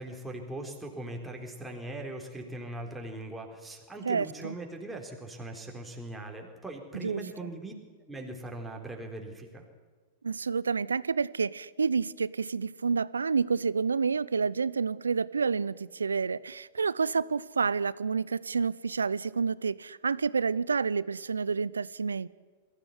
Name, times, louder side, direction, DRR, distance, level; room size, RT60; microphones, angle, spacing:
voice 1, 0.0-7.7 8.1-9.7, right 1 dB, 5° right, 1 dB, 3.9 m, -40 dB
voice 2, 4.1-4.6 6.9-7.5 10.2-22.3, right 5 dB, 80° right, 20 dB, 0.6 m, -29 dB
22.0 x 14.5 x 9.5 m, 1.5 s
figure-of-eight pair, 100°, 0 cm